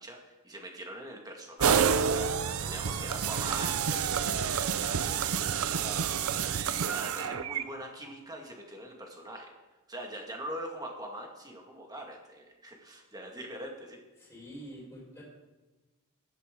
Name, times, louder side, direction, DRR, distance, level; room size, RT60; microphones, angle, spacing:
voice 1, 0.0-2.3 2.6-6.1 6.5-9.5 9.9-14.0, right 1 dB, 15° right, 1 dB, 1.9 m, -43 dB
sound 1, 1.6-7.6, right 7 dB, 70° right, 0.6 m, -29 dB
voice 2, 14.2-15.2, equal, 10° left, -5 dB, 4.7 m, -46 dB
15.0 x 12.0 x 3.8 m, 1.2 s
head